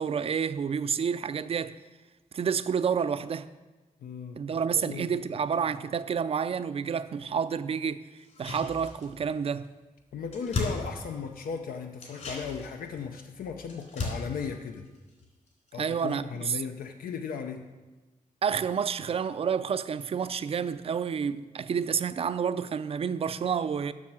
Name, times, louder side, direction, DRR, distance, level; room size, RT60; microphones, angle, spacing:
voice 1, 0.0-1.8 2.3-3.5 4.4-8.1 8.4-9.7 15.8-16.6 18.4-23.9, right 7 dB, 45° right, 0.4 m, -29 dB
voice 2, 4.0-5.2 10.1-14.9 15.7-17.7, left 6 dB, 90° left, 0.6 m, -37 dB
sound 1, 8.2-9.3 9.6-9.7 10.0-11.5 11.9-15.7 16.0-16.1, left 2 dB, 60° left, 2.9 m, -37 dB
7.4 x 6.2 x 7.4 m
wide cardioid pair, 140°, 14 cm